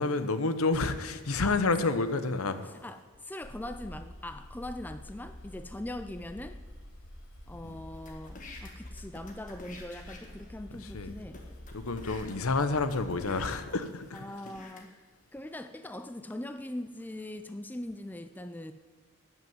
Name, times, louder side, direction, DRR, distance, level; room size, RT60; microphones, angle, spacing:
voice 1, 0.0-2.7 7.6-7.8 10.9-11.1 11.7-14.2, left 3 dB, 80° left, 11 dB, 0.9 m, -29 dB
voice 2, 2.8-6.6 7.5-11.4 14.1-14.9 15.3-18.7, left 1 dB, 10° left, 9 dB, 0.4 m, -41 dB
sound 1, 3.4-13.5, left 1 dB, 50° left, 1.4 m, -47 dB
sound 2, 7.9-10.5 11.0-11.1 11.3-14.8, left 3 dB, 35° left, 1.6 m, -50 dB
13.5 x 6.1 x 9.3 m, 1.5 s
head